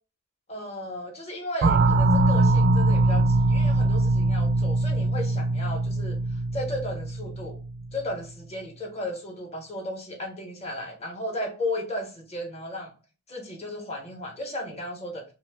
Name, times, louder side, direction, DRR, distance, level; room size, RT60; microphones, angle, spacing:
voice 1, 0.5-6.2 6.5-7.6 7.9-12.9 13.3-15.2, left 1 dB, 30° left, 2 dB, 0.7 m, -34 dB
Deep Bell A Sharp, 1.6-7.9, right 2 dB, 50° right, 0.3 m, -22 dB
2.7 x 2.1 x 3.3 m, 0.34 s
head